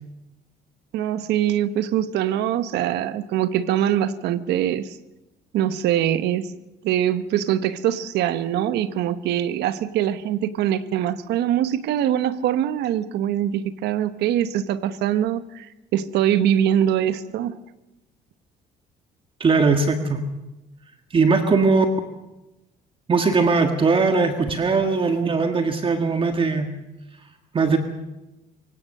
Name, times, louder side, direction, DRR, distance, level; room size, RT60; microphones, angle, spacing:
voice 1, 0.9-4.9 5.5-6.5 6.8-15.7 15.9-17.6, right 11 dB, 80° right, 13 dB, 1.2 m, -23 dB
voice 2, 19.4-20.2 21.1-21.8 23.1-26.7 27.5-27.8, right 4 dB, 30° right, 6 dB, 1.7 m, -20 dB
26.0 x 17.0 x 6.6 m, 0.98 s
cardioid pair, 110°, 17 cm